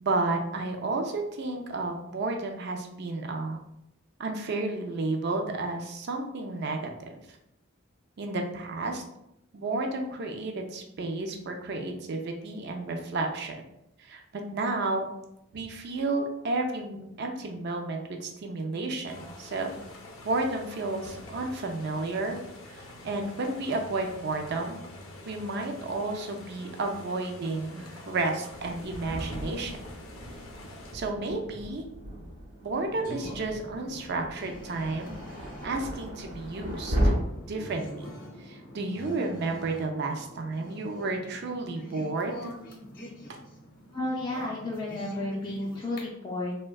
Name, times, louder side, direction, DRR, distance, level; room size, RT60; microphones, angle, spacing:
voice 1, 0.0-3.6 4.2-6.8 7.1-7.2 8.2-9.0 9.5-13.6 14.0-14.2 14.5-15.1 15.5-19.7 20.2-22.4 22.7-24.8 25.3-29.7 30.9-31.9 32.6-35.2 35.6-37.1 37.5-38.0 38.4-42.5, right 2 dB, 50° right, 3 dB, 0.4 m, -32 dB
sound 1, 19.1-30.9, left 1 dB, 80° left, 0.5 m, -46 dB
Thunder, 28.5-37.1, equal, 75° right, 0.9 m, -35 dB
sound 2, 32.9-46.0, left 1 dB, 45° left, 0.7 m, -45 dB
voice 2, 43.9-46.6, left 1 dB, 20° left, -5 dB, 0.4 m, -32 dB
3.4 x 2.2 x 2.2 m, 0.82 s
head